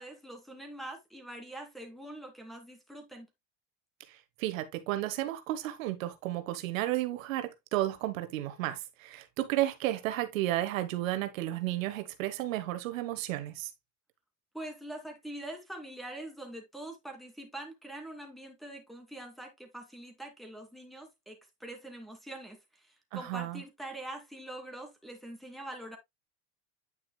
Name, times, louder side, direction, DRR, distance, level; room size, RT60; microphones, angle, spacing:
voice 1, 0.0-3.3 14.5-26.0, right 1 dB, ahead, 2.6 m, -44 dB
voice 2, 4.1-13.7 23.1-23.6, right 15 dB, 85° right, 1.2 m, -33 dB
9.4 x 5.9 x 2.3 m
supercardioid pair, 100°, 39 cm